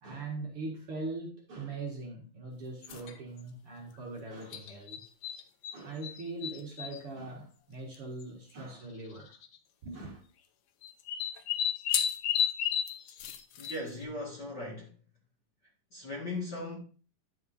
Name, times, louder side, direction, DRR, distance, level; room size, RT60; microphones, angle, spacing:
voice 1, 0.0-5.0 5.7-9.4 9.8-10.2, right 3 dB, 50° right, 2.3 m, -41 dB
sound 1, 2.8-3.2 4.5-5.8 6.0-7.0 7.9-8.2 9.3-9.6 10.8-14.0, left 9 dB, 75° left, 1.6 m, -32 dB
voice 2, 13.6-14.9 15.9-16.8, left 2 dB, 40° left, 2.0 m, -38 dB
11.0 x 7.1 x 2.6 m
omnidirectional pair, 3.8 m